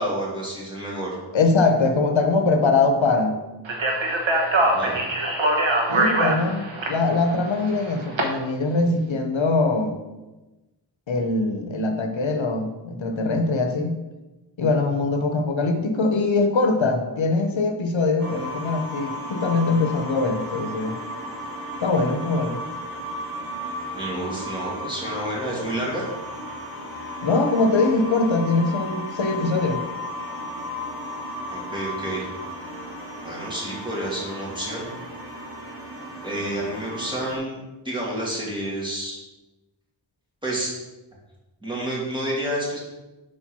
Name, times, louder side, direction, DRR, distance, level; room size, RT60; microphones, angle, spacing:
voice 1, 0.0-1.2 4.6-5.0 23.9-26.1 31.5-32.3 33.2-34.9 36.2-37.6 37.8-39.2 40.4-40.7 41.6-42.8, right 1 dB, 10° right, -6 dB, 2.2 m, -29 dB
voice 2, 1.3-3.4 5.9-10.0 11.1-14.0 14.6-21.0 21.8-22.6 27.2-29.8, left 3 dB, 85° left, 5 dB, 0.7 m, -22 dB
Speech, 3.7-8.2, right 2 dB, 90° right, 1.1 m, -23 dB
sound 1, 18.2-37.4, left 1 dB, 50° right, 1.8 m, -34 dB
4.7 x 4.4 x 5.9 m, 1.1 s
wide cardioid pair, 60°, 45 cm